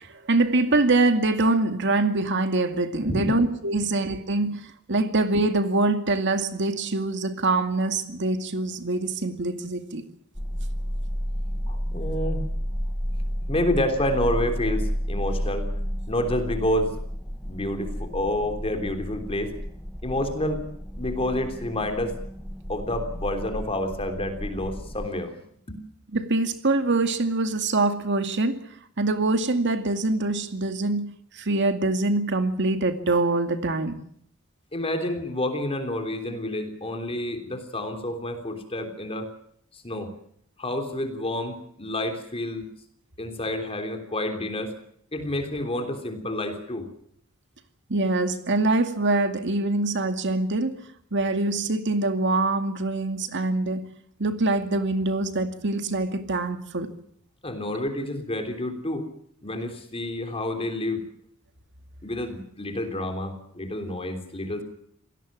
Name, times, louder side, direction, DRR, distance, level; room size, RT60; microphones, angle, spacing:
voice 1, 0.0-4.6 4.9-10.0 26.1-28.6 29.0-31.1 31.3-34.0 47.9-50.7 51.1-53.8 54.2-56.9, right 2 dB, 55° right, 2.3 m, -24 dB
sound 1, 10.3-25.1, equal, 5° left, 1.0 m, -31 dB
voice 2, 11.7-12.5 13.5-15.7 16.1-16.9 17.4-19.5 20.0-20.7 21.0-22.1 22.7-25.3 25.7-25.8 34.7-39.3 39.8-40.1 40.6-42.7 43.2-44.7 45.1-46.8 57.4-59.1 59.4-61.1 62.0-64.6, left 1 dB, 25° left, 3.3 m, -29 dB
26.5 x 17.5 x 7.5 m
head